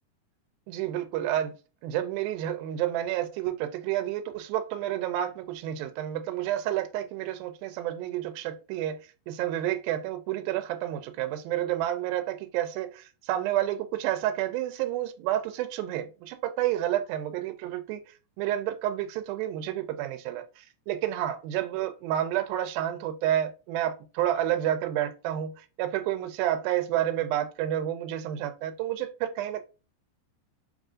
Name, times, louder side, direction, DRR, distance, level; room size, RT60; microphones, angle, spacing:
voice 1, 0.7-1.5 1.8-9.0 9.3-29.6, right 12 dB, 90° right, 2.4 m, -30 dB
5.3 x 2.4 x 3.6 m
omnidirectional pair, 4.1 m